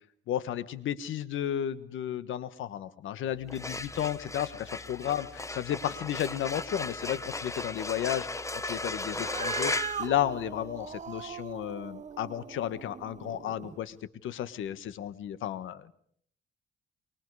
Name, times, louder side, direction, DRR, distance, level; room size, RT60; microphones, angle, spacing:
voice 1, 0.3-9.7 10.0-13.9 14.2-15.9, left 10 dB, 80° left, 15 dB, 1.5 m, -33 dB
sound 1, 3.4-10.9, left 2 dB, 15° left, 1.1 m, -36 dB
Cat, 9.1-13.8, right 7 dB, 35° right, 0.9 m, -40 dB
25.0 x 23.5 x 4.9 m, 0.62 s
cardioid pair, 90°, 20 cm